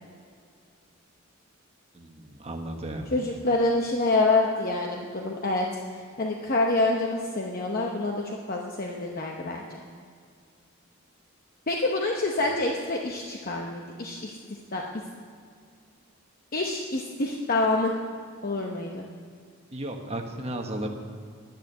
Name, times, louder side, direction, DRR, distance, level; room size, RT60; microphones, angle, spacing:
voice 1, 1.9-3.1 19.7-20.9, right 1 dB, 30° right, 3 dB, 1.2 m, -34 dB
voice 2, 3.1-5.7 5.9-9.8 11.7-14.4 14.7-14.8 16.5-17.9 18.4-19.0, left 2 dB, 45° left, 0 dB, 0.9 m, -27 dB
10.5 x 9.8 x 6.7 m, 2.2 s
head